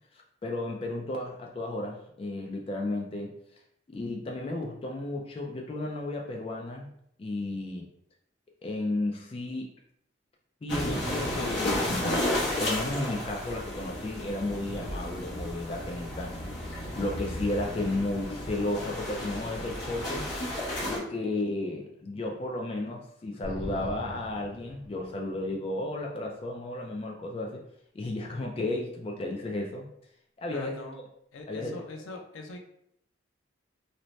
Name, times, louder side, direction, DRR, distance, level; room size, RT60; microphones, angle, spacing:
voice 1, 0.4-3.3 3.9-6.9 7.2-7.9 8.6-9.7 10.6-12.2 12.6-16.3 17.0-20.3 20.8-27.6 27.9-29.9 30.4-30.8 31.5-31.8, left 2 dB, 30° left, 0 dB, 0.3 m, -33 dB
sound 1, 10.7-21.0, left 1 dB, 65° left, 1.0 m, -33 dB
sound 2, 23.4-25.3, right 1 dB, 30° right, 0.6 m, -40 dB
voice 2, 30.5-31.0 31.3-32.6, left 2 dB, 90° left, 3 dB, 0.5 m, -42 dB
2.7 x 2.1 x 3.1 m, 0.71 s
head